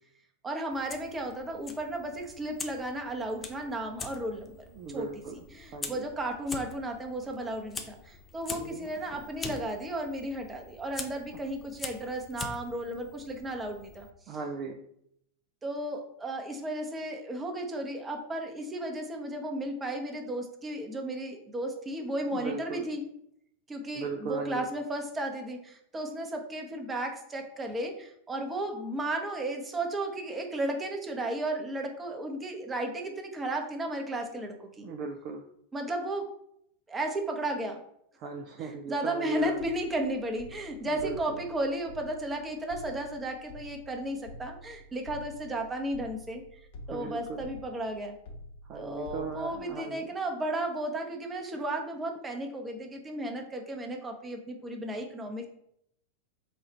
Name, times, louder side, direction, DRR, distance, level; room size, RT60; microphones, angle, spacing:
voice 1, 0.4-4.5 4.9-5.1 5.5-14.4 15.6-23.0 23.7-34.9 35.7-36.3 36.9-37.8 38.6-46.4 46.9-48.1 48.7-55.5, right 1 dB, 15° right, 3 dB, 0.8 m, -34 dB
Fire, 0.7-14.1, left 4 dB, 20° left, 0.5 m, -44 dB
voice 2, 4.7-5.5 5.7-6.1 8.5-8.9 14.3-14.8 22.3-22.8 23.9-24.7 34.8-35.4 38.2-39.6 40.9-41.4 46.9-47.5 48.6-50.1, right 4 dB, 40° right, 3 dB, 0.4 m, -38 dB
sound 1, 39.4-49.6, left 1 dB, 55° left, 0.8 m, -48 dB
4.2 x 2.4 x 4.2 m, 0.73 s
figure-of-eight pair, 90°, 0 cm